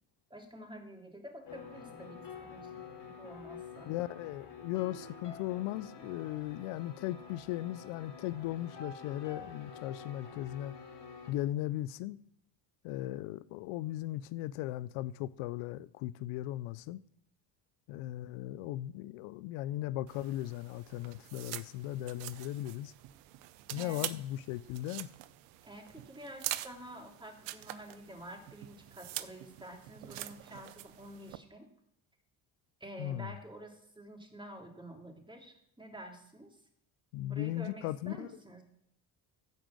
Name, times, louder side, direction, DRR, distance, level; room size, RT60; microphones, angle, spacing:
voice 1, 0.3-2.8 3.0-3.9 23.8-24.0 25.6-31.7 32.8-36.6 37.3-38.6, right 1 dB, 10° right, 3.1 m, -49 dB
sound 1, 1.5-11.3, left 5 dB, 55° left, 3.4 m, -48 dB
voice 2, 3.8-10.8 11.3-12.2 12.8-17.0 17.9-22.9 23.7-25.1 33.0-33.3 37.1-38.3, left 15 dB, 80° left, 0.6 m, -37 dB
sound 2, 20.1-31.4, right 15 dB, 90° right, 0.7 m, -45 dB
14.5 x 5.1 x 7.5 m
supercardioid pair, 65°, 49 cm